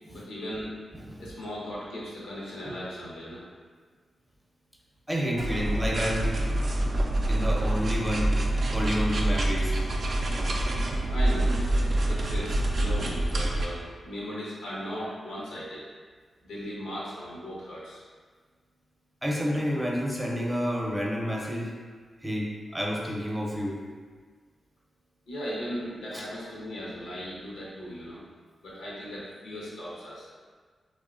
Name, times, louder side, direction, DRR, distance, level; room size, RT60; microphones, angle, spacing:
voice 1, 0.1-0.7 1.2-3.5 11.1-15.9 16.4-18.0 25.3-28.2 28.6-30.3, equal, 90° left, -7 dB, 0.7 m, -37 dB
voice 2, 5.1-6.3 7.3-8.3 8.7-9.7 11.4-11.5 19.2-21.7 22.2-23.8 26.1-26.2, equal, 10° right, -2 dB, 0.6 m, -29 dB
sound 1, 5.4-13.7, right 1 dB, 60° right, 0.3 m, -26 dB
2.9 x 2.1 x 2.4 m, 1.5 s
supercardioid pair, 40°, 0 cm